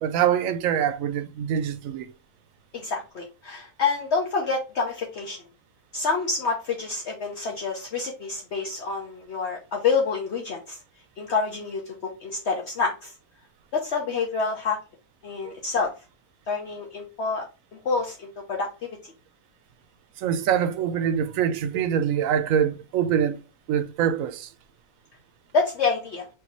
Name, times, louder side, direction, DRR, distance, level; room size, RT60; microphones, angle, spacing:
voice 1, 0.0-2.1 15.4-15.5 20.2-23.4 23.7-24.5, right 8 dB, 70° right, 1.0 m, -24 dB
voice 2, 2.7-5.4 5.9-10.8 11.2-13.1 13.7-14.8 15.2-15.9 16.5-17.4 17.8-18.7 25.5-26.2, left 4 dB, 55° left, 0.9 m, -27 dB
6.5 x 2.7 x 3.0 m
omnidirectional pair, 1.5 m